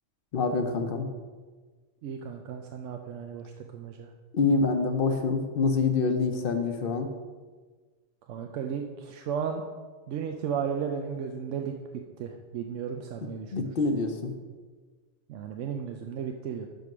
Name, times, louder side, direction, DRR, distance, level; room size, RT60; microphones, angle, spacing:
voice 1, 0.3-1.0 4.3-7.1 13.5-14.3, left 4 dB, 55° left, 6 dB, 0.9 m, -26 dB
voice 2, 2.0-4.1 8.3-9.6 10.1-13.7 15.3-16.7, right 7 dB, 85° right, 4 dB, 0.9 m, -34 dB
6.5 x 5.2 x 5.9 m, 1.4 s
omnidirectional pair, 1.2 m